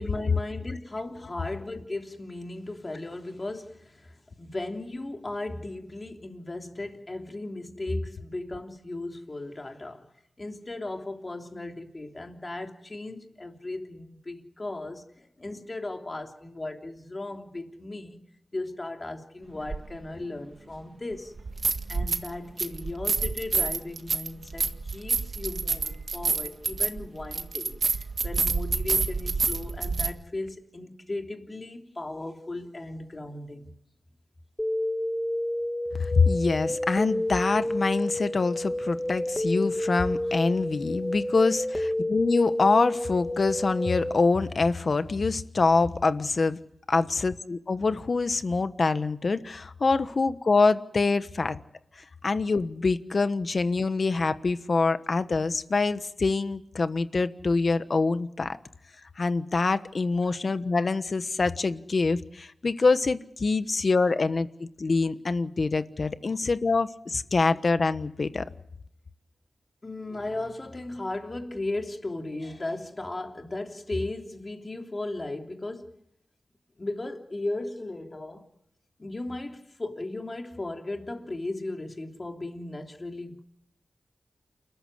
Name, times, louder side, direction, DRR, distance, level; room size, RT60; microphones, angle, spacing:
voice 1, 0.0-10.0 10.4-18.2 18.5-21.3 21.9-33.7 60.3-60.4 69.8-75.9 76.8-78.5 79.0-83.4, left 2 dB, 30° left, 3.2 m, -36 dB
sound 1, 19.7-19.8 21.4-22.3 22.6-30.1, right 4 dB, 60° right, 1.8 m, -28 dB
sound 2, 34.6-44.1, left 1 dB, 10° left, 1.9 m, -30 dB
voice 2, 36.0-46.6 46.9-51.6 52.0-58.6 59.2-68.4, left 3 dB, 55° left, 1.2 m, -25 dB
29.0 x 14.0 x 9.8 m
wide cardioid pair, 75°, 0 cm